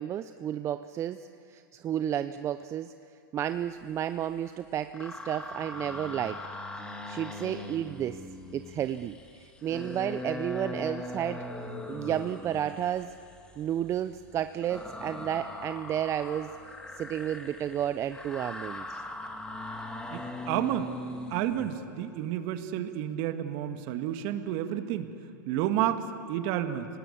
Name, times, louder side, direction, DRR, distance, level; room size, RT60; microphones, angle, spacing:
voice 1, 0.0-2.9 3.3-6.4 7.1-8.2 8.5-11.4 11.9-13.1 13.6-16.5 17.0-19.0, right 10 dB, 25° right, 11 dB, 0.5 m, -32 dB
sound 1, 3.9-4.5 4.8-21.8, left 2 dB, 10° left, 2.1 m, -41 dB
voice 2, 20.1-20.9 21.3-25.1 25.5-26.9, right 11 dB, 50° right, 8 dB, 1.7 m, -30 dB
25.5 x 18.5 x 8.6 m, 2.5 s
hypercardioid pair, 115°, 11 cm